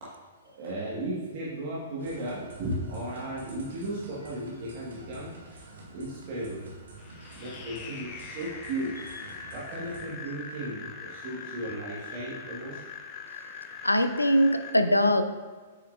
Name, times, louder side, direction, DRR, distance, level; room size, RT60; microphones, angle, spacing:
voice 1, 0.5-5.4 5.9-6.7 7.3-8.9 9.5-12.8, right 1 dB, 45° right, -6 dB, 1.4 m, -35 dB
sound 1, 2.0-10.1, right 2 dB, 65° right, 1.2 m, -48 dB
sound 2, 7.0-14.7, left 5 dB, 35° left, 0.8 m, -42 dB
voice 2, 13.8-15.2, equal, 90° left, 8 dB, 0.4 m, -22 dB
8.0 x 5.8 x 2.5 m, 1.4 s
figure-of-eight pair, 110°, 0 cm